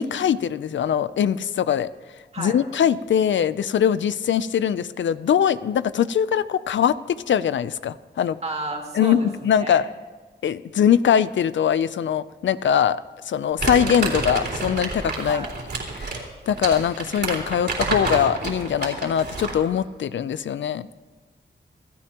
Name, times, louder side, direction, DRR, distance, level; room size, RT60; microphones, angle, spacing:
voice 1, 0.0-1.9 2.4-8.4 8.9-9.9 10.4-13.0 13.3-15.5 16.0-20.9, left 8 dB, 85° left, 15 dB, 0.5 m, -22 dB
voice 2, 8.4-9.8 15.2-15.5, right 2 dB, 35° right, 1 dB, 2.4 m, -32 dB
Crumpling crinkling, 13.6-19.7, right 3 dB, 65° right, 3.6 m, -29 dB
27.0 x 13.5 x 3.0 m, 1.3 s
wide cardioid pair, 100°, 19 cm